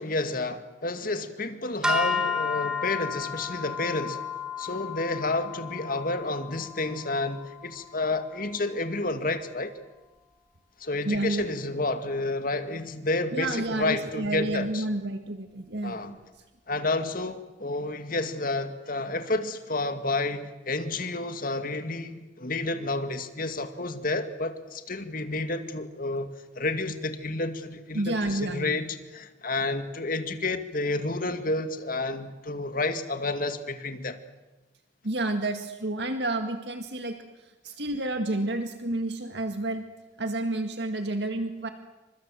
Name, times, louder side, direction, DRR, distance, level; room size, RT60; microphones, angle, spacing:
voice 1, 0.0-4.2 4.6-9.7 10.8-14.8 15.8-16.1 16.7-26.3 26.6-34.2, left 2 dB, 50° left, 2.3 m, -30 dB
sound 1, 1.8-8.2, left 4 dB, 5° right, 3.2 m, -32 dB
voice 2, 11.0-11.6 13.3-16.2 27.9-28.8 35.0-37.2 37.6-39.8 40.2-41.7, right 2 dB, 70° right, 2.1 m, -30 dB
29.5 x 25.5 x 7.8 m
head